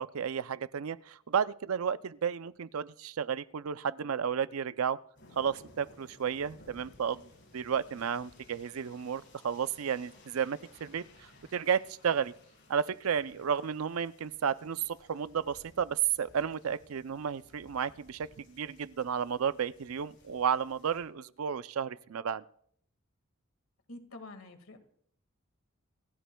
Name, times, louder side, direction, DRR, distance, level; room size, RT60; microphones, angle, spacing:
voice 1, 0.0-5.0 5.4-12.3 12.7-22.4, right 7 dB, 85° right, 15 dB, 0.5 m, -32 dB
sound 1, 5.2-21.0, left 2 dB, 60° left, 7.8 m, -59 dB
voice 2, 23.9-24.8, left 2 dB, 75° left, 7 dB, 1.9 m, -47 dB
27.5 x 15.5 x 2.3 m, 0.66 s
head